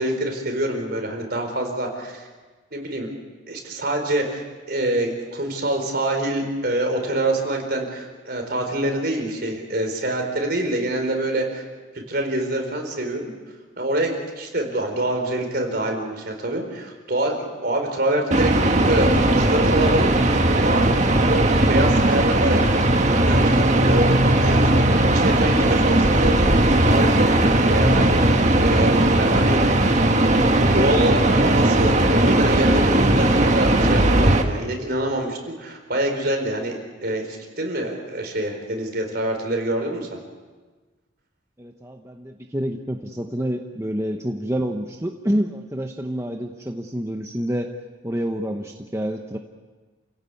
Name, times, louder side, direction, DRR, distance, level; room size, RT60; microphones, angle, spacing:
voice 1, 0.0-2.2 2.7-3.1 3.5-11.7 12.1-13.3 13.8-20.8 21.3-24.8 25.1-28.2 28.6-29.8 30.5-40.2, right 1 dB, 50° right, 3 dB, 4.4 m, -26 dB
sound 1, 18.3-34.4, right 1 dB, 35° right, 1.7 m, -18 dB
voice 2, 41.6-47.7 48.0-49.4, equal, 15° right, 3 dB, 1.0 m, -28 dB
29.0 x 16.5 x 8.5 m, 1.3 s
head